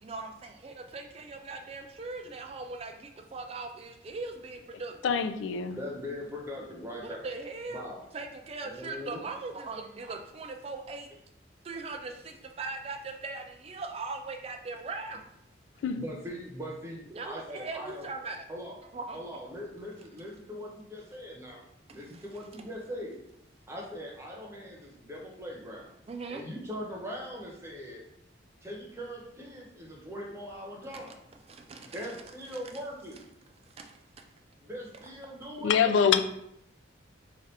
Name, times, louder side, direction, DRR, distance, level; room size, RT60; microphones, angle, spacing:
voice 1, 0.0-5.2 7.0-7.9 8.1-11.1 11.6-15.2 17.1-18.5 18.9-19.2 21.9-22.2 26.1-26.4 30.9-31.0 31.5-32.2 32.5-32.6 33.6-34.3, right 3 dB, 30° right, 4 dB, 0.3 m, -40 dB
voice 2, 5.0-5.8 15.8-16.0 35.6-36.2, left 7 dB, 70° left, 9 dB, 0.3 m, -24 dB
voice 3, 5.7-7.2 7.7-8.0 8.6-9.2 15.9-18.1 18.5-18.8 19.1-21.6 21.9-23.2 23.7-25.9 26.3-28.0 28.6-31.2 31.8-33.2 34.7-36.0, equal, 15° right, -3 dB, 0.8 m, -41 dB
3.3 x 2.4 x 4.1 m, 0.78 s
head